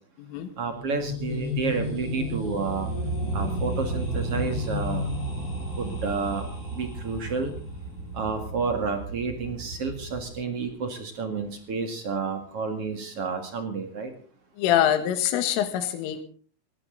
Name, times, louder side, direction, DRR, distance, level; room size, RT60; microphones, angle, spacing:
voice 1, 0.6-2.9 3.3-5.1 5.8-6.5 6.7-7.5 8.1-14.1, right 4 dB, 45° right, 7 dB, 2.0 m, -30 dB
sound 1, 0.7-7.6, left 2 dB, 20° left, 4.4 m, -35 dB
sound 2, 2.0-10.3, right 2 dB, 25° right, 3.2 m, -33 dB
voice 2, 14.6-16.2, left 11 dB, 85° left, 9 dB, 4.1 m, -24 dB
18.5 x 17.5 x 3.9 m, 0.40 s
omnidirectional pair, 5.6 m